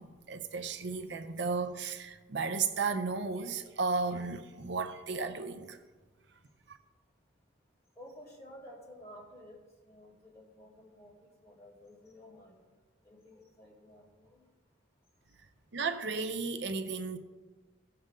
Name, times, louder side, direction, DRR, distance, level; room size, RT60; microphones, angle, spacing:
voice 1, 0.0-5.8 6.7-6.8 15.7-17.2, right 4 dB, 65° right, 0.6 m, -34 dB
voice 2, 8.0-12.6 13.0-14.4, equal, 15° left, 3.0 m, -53 dB
16.5 x 6.6 x 3.7 m
head